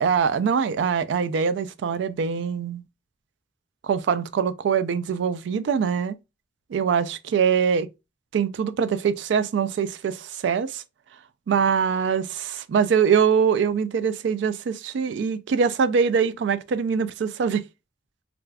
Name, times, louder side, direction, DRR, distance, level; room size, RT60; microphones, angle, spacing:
voice 1, 0.0-2.8 3.8-6.2 6.7-7.9 8.3-10.8 11.5-17.6, right 6 dB, 65° right, 0.3 m, -23 dB
2.4 x 2.3 x 3.3 m
head